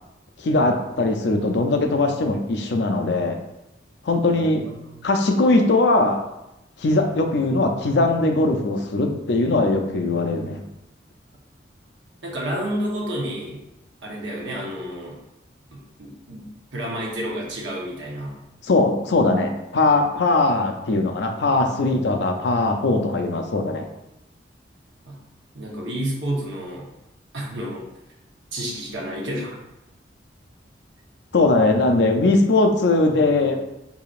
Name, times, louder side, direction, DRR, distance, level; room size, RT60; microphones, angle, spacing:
voice 1, 0.4-3.4 4.0-4.6 5.0-6.3 6.8-10.6 18.6-23.9 31.3-33.6, left 2 dB, 70° left, 4 dB, 0.5 m, -20 dB
voice 2, 4.4-5.1 12.2-13.6 14.0-15.2 15.7-18.4 21.4-21.6 25.1-25.2 25.5-26.9 27.3-27.8 28.5-29.6, equal, 90° right, -2 dB, 1.0 m, -30 dB
4.8 x 2.8 x 2.4 m, 0.90 s
head